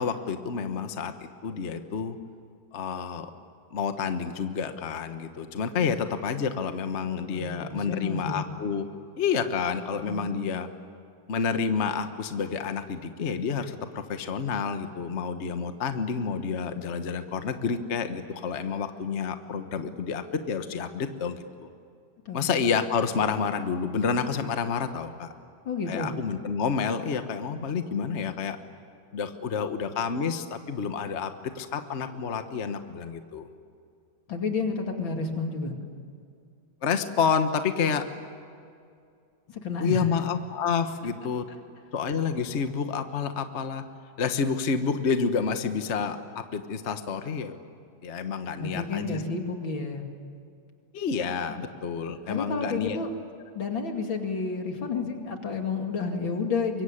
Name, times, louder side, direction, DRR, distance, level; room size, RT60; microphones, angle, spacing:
voice 1, 0.0-2.2 2.7-3.3 3.7-8.8 9.2-10.7 11.3-21.7 22.3-25.3 25.9-28.6 29.1-33.5 36.8-38.1 39.8-41.5 41.9-43.8 44.2-47.6 48.0-49.2 50.9-53.0, left 6 dB, 40° left, 8 dB, 1.4 m, -29 dB
voice 2, 7.3-8.4 10.0-10.3 22.3-22.5 25.6-26.1 34.3-35.7 39.5-40.0 48.6-50.0 52.3-53.1 53.5-56.8, left 4 dB, 85° left, 3 dB, 3.3 m, -30 dB
25.0 x 23.0 x 9.9 m, 2.3 s
omnidirectional pair, 2.1 m